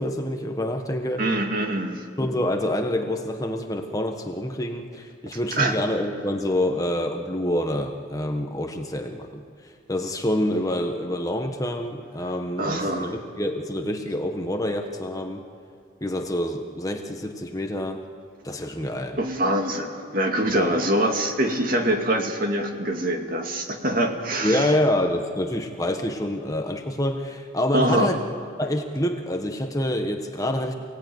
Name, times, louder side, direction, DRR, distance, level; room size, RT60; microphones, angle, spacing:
voice 1, 0.0-1.2 2.2-9.4 9.9-15.4 16.0-18.0 18.4-19.2 20.5-20.8 24.4-28.2 28.6-30.7, left 1 dB, 15° left, 4 dB, 1.3 m, -27 dB
voice 2, 1.2-2.0 5.3-5.7 12.6-13.1 19.2-24.7 27.7-28.1, right 1 dB, 45° right, 3 dB, 2.3 m, -24 dB
28.0 x 17.5 x 9.4 m, 2.2 s
head